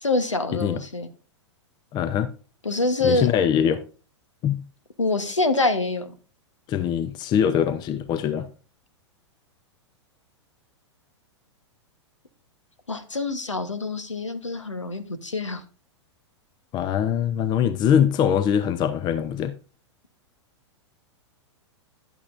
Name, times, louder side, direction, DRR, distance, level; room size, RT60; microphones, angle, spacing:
voice 1, 0.0-1.1 2.6-3.3 5.0-6.1 12.9-15.6, left 2 dB, 90° left, 1.2 m, -25 dB
voice 2, 0.5-0.8 1.9-2.3 3.0-3.8 4.4-4.6 6.7-8.5 16.7-19.5, left 9 dB, 30° left, 0.6 m, -23 dB
10.5 x 8.3 x 2.6 m
figure-of-eight pair, 100°, 15 cm